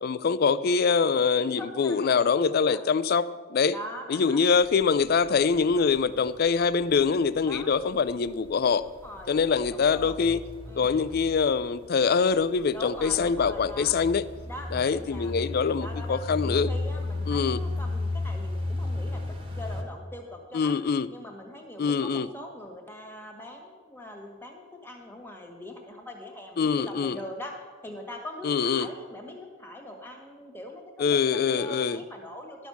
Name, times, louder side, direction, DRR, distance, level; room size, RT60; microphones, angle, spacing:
voice 1, 0.0-3.8 4.1-8.9 9.3-10.4 10.8-14.3 14.7-16.7 17.3-17.6 20.5-21.1 21.8-22.3 26.6-27.2 28.4-28.9 31.0-32.0, left 5 dB, 50° left, 16 dB, 0.4 m, -24 dB
voice 2, 1.4-2.8 3.7-4.4 5.6-5.9 7.4-7.8 8.8-10.2 10.7-10.9 12.7-13.9 14.5-20.8 21.1-27.5 27.8-32.7, left 1 dB, 10° left, 2 dB, 1.5 m, -42 dB
sound 1, 4.5-19.8, left 2 dB, 25° right, 1.4 m, -35 dB
11.5 x 6.2 x 7.0 m, 1.5 s
head